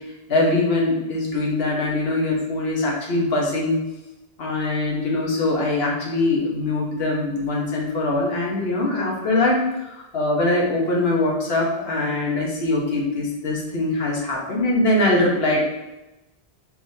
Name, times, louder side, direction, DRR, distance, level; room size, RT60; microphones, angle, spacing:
voice 1, 0.3-3.8 4.4-15.6, left 2 dB, 75° left, -3 dB, 1.1 m, -22 dB
3.5 x 3.1 x 2.6 m, 0.96 s
omnidirectional pair, 1.1 m